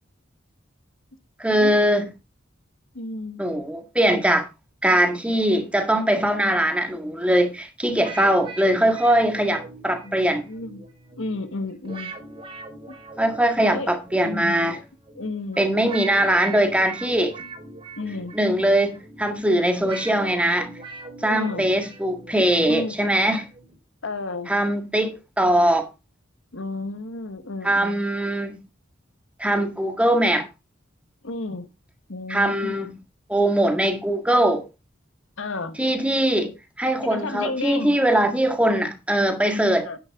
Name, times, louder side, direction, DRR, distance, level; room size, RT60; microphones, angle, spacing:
voice 1, 1.4-2.1 3.4-4.5 4.8-10.5 13.2-14.8 15.6-17.4 18.3-20.8 21.2-23.5 24.5-25.9 27.6-28.6 29.4-30.5 32.3-32.9 33.3-34.6 35.8-39.9, right 1 dB, 5° right, 1.7 m, -21 dB
voice 2, 2.9-3.4 10.0-10.8 11.2-12.2 12.9-13.0 13.6-13.9 14.2-14.7 15.1-15.9 18.0-18.4 21.3-21.8 22.7-23.0 24.0-24.5 26.5-28.0 31.2-31.7 32.1-32.8 35.4-35.8 37.0-38.0 39.7-40.0, left 3 dB, 80° left, 1.3 m, -32 dB
sound 1, 7.8-23.8, right 3 dB, 30° right, 4.6 m, -41 dB
10.5 x 9.8 x 3.6 m
head